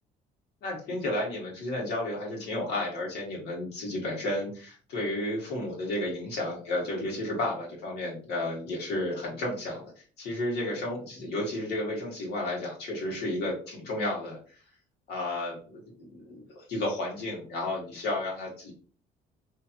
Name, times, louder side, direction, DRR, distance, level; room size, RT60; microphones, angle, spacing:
voice 1, 0.6-9.9 10.2-14.4 15.1-18.7, left 1 dB, 75° left, -3 dB, 1.2 m, -32 dB
2.9 x 2.5 x 2.4 m, 0.40 s
cardioid pair, 110°, 17 cm